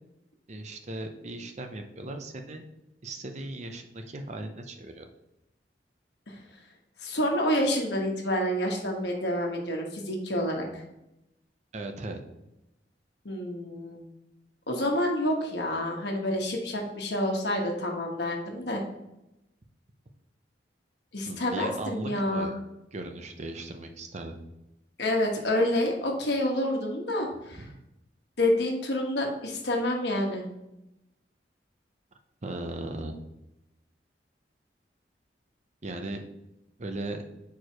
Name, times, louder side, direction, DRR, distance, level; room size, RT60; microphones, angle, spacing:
voice 1, 0.5-2.6 3.0-5.1 11.7-12.2 21.2-22.5 22.9-24.4 27.5-27.8 32.4-33.2 35.8-36.2 36.8-37.2, right 2 dB, 40° right, 5 dB, 0.6 m, -37 dB
voice 2, 7.0-10.7 13.2-14.0 14.7-18.8 21.1-22.5 25.0-27.6 28.4-30.4, left 1 dB, 70° left, 1 dB, 1.3 m, -28 dB
4.7 x 4.7 x 4.6 m, 0.88 s
head